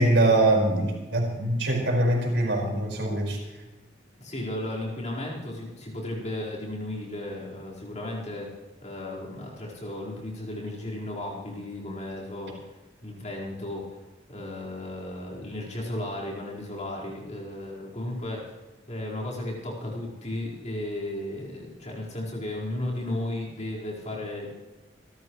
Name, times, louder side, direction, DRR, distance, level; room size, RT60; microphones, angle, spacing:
voice 1, 0.0-3.4, right 1 dB, 80° right, -1 dB, 5.1 m, -23 dB
voice 2, 4.2-8.5 8.8-12.6 13.0-14.0 14.3-18.6 18.9-24.5, left 1 dB, 40° left, -4 dB, 4.7 m, -34 dB
28.0 x 13.5 x 3.2 m, 1.2 s
head